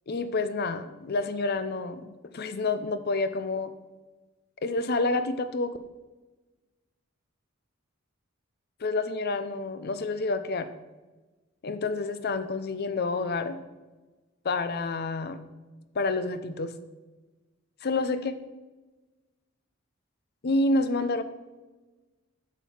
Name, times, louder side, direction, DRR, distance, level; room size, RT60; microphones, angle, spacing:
voice 1, 0.1-3.7 4.6-5.8 8.8-10.7 11.6-13.6 14.4-15.4 15.9-16.7 17.8-18.3 20.4-21.2, left 3 dB, 50° left, 11 dB, 0.6 m, -28 dB
7.3 x 6.1 x 5.7 m, 1.2 s
head